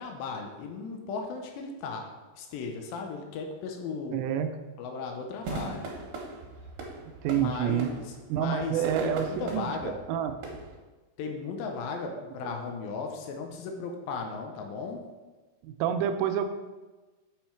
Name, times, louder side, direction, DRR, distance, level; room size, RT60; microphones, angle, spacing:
voice 1, 0.0-2.1 2.4-4.3 4.8-5.9 7.3-10.0 11.2-15.0, left 4 dB, 80° left, 3 dB, 2.1 m, -36 dB
voice 2, 4.1-4.5 7.2-7.9 8.3-10.6 12.1-12.2 15.6-16.5, right 9 dB, 85° right, 7 dB, 2.7 m, -28 dB
sound 1, 5.4-10.8, right 3 dB, 65° right, 2.6 m, -40 dB
7.0 x 5.6 x 4.4 m, 1.2 s
omnidirectional pair, 5.1 m